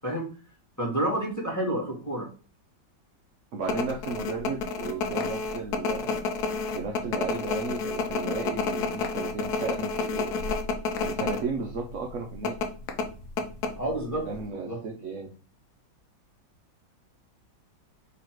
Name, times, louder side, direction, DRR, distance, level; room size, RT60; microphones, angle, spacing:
voice 1, 0.8-2.3 13.8-14.2 14.6-14.8, right 1 dB, 10° left, -2 dB, 1.1 m, -29 dB
voice 2, 3.5-6.3 6.7-10.3 11.0-12.6 14.1-15.3, right 4 dB, 70° right, 2 dB, 0.7 m, -34 dB
sound 1, 3.6-11.4 11.7-11.8 12.4-14.1 14.4-14.5, left 4 dB, 65° left, 1.1 m, -29 dB
4.1 x 2.9 x 4.4 m, 0.37 s
omnidirectional pair, 2.0 m